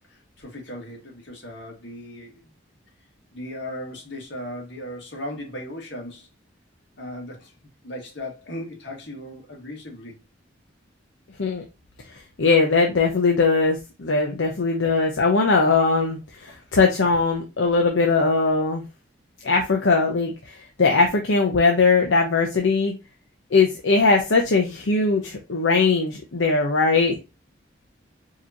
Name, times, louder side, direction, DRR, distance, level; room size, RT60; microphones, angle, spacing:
voice 1, 0.1-2.4 3.3-6.3 7.0-7.5 7.8-10.2 16.5-16.6, left 1 dB, 60° left, 1.7 m, -37 dB
voice 2, 12.4-18.8 19.4-22.9 23.5-27.2, left 4 dB, 80° left, 0.8 m, -20 dB
4.8 x 3.0 x 2.7 m
head